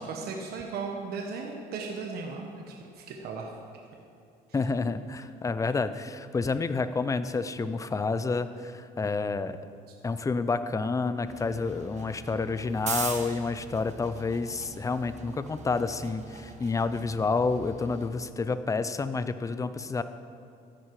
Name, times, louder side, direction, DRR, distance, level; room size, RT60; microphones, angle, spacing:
voice 1, 0.0-3.5, right 4 dB, 70° right, 1 dB, 1.3 m, -36 dB
voice 2, 4.5-9.6 10.0-20.0, left 4 dB, 20° left, 12 dB, 0.5 m, -29 dB
sound 1, 11.3-18.1, right 5 dB, 45° right, 1.3 m, -41 dB
13.0 x 10.0 x 4.8 m, 2.5 s
cardioid pair, 110°, 17 cm